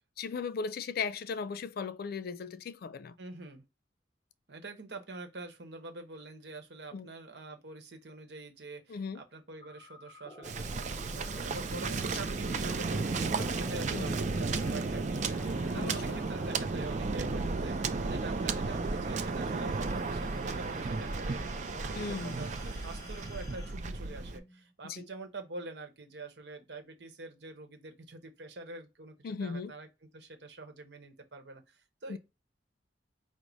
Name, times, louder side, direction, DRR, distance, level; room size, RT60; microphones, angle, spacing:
voice 1, 0.2-3.1 6.9-7.1 8.9-9.2 13.9-14.1 15.7-16.2 22.0-22.4 24.8-25.1 29.2-29.7 32.1-32.2, left 5 dB, 55° left, 0.4 m, -37 dB
voice 2, 3.2-3.6 4.5-32.2, right 2 dB, 65° right, 1.0 m, -46 dB
sound 1, 9.6-24.7, left 2 dB, 20° left, 0.7 m, -51 dB
Waves surf, 10.4-24.4, right 3 dB, 40° right, 0.4 m, -33 dB
4.7 x 2.0 x 3.9 m
head